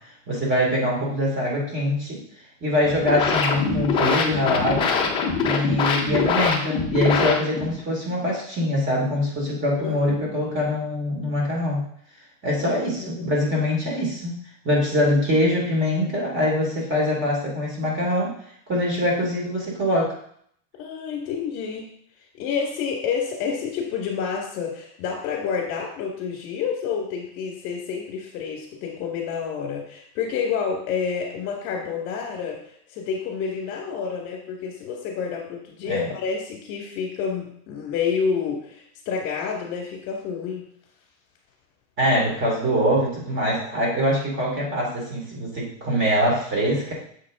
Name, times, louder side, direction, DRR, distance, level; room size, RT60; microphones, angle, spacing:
voice 1, 0.3-2.2 2.6-4.9 5.4-11.8 12.4-14.3 14.6-18.3 18.7-20.1 35.8-36.1 42.0-46.9, equal, 25° right, -3 dB, 2.6 m, -23 dB
sound 1, 2.8-7.8, left 5 dB, 15° left, 0.3 m, -23 dB
voice 2, 9.8-10.4 12.6-12.7 13.0-13.3 20.8-21.8 22.4-40.6, left 6 dB, 50° left, 0 dB, 1.9 m, -29 dB
7.3 x 4.5 x 3.7 m, 0.65 s
supercardioid pair, 140°, 47 cm